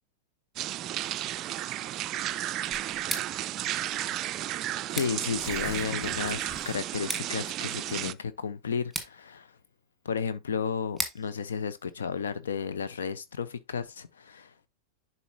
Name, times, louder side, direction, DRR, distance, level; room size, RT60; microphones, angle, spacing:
sound 1, 0.6-8.1, right 13 dB, 35° right, 0.4 m, -33 dB
Tearing, 2.7-3.1 3.9-4.0 4.3-4.4 5.1-7.0, left 3 dB, 20° left, 1.7 m, -45 dB
Scissors, 2.9-12.8, right 1 dB, ahead, 1.7 m, -42 dB
voice 1, 4.9-9.5 10.0-14.7, left 6 dB, 65° left, 0.7 m, -33 dB
11.0 x 4.1 x 2.7 m
figure-of-eight pair, 90°, 0 cm